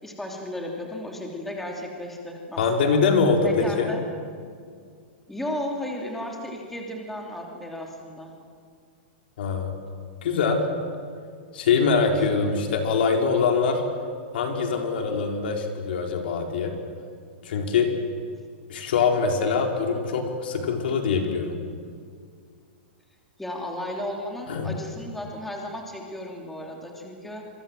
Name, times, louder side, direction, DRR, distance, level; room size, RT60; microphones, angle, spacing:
voice 1, 0.0-3.0 3.4-4.0 5.3-8.3 12.2-12.3 23.4-27.4, left 1 dB, 5° left, 0 dB, 3.0 m, -34 dB
voice 2, 2.6-3.9 9.4-9.8 10.2-10.7 11.5-13.8 14.3-16.7 17.4-17.9 18.7-21.6 24.5-24.7, left 5 dB, 70° left, 2 dB, 4.5 m, -23 dB
27.5 x 23.5 x 7.6 m, 2.1 s
supercardioid pair, 155°, 6 cm